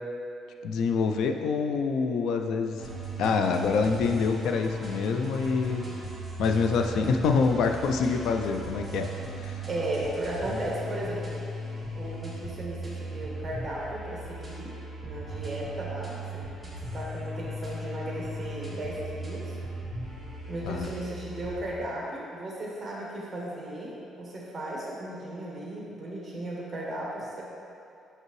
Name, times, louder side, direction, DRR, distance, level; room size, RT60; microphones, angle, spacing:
voice 1, 0.6-2.8 3.2-5.8 6.4-9.1 9.4-9.6 20.7-20.9, left 5 dB, 75° left, 5 dB, 0.4 m, -26 dB
sound 1, 2.8-21.5, right 1 dB, ahead, 1.5 m, -37 dB
voice 2, 9.7-11.4 11.9-14.7 15.0-16.5 16.9-19.6 20.5-27.4, right 1 dB, 20° right, -4 dB, 1.4 m, -35 dB
6.0 x 5.4 x 3.1 m, 2.5 s
cardioid pair, 120°, 0 cm